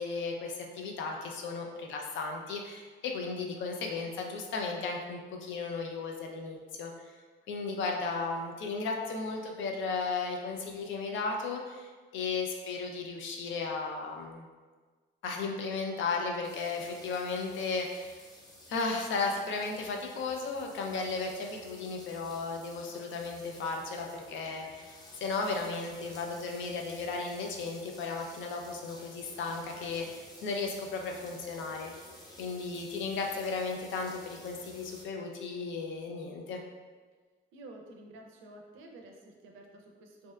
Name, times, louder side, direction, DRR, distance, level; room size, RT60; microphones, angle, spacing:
voice 1, 0.0-6.9 7.5-14.5 15.2-18.2 18.7-31.9 32.4-36.6, left 4 dB, 75° left, 1 dB, 0.4 m, -35 dB
sound 1, 16.4-35.0, left 1 dB, 20° left, 0.5 m, -53 dB
voice 2, 37.5-40.3, right 2 dB, 90° right, 2 dB, 0.4 m, -51 dB
2.6 x 2.1 x 2.3 m, 1.4 s
cardioid pair, 90°, 20 cm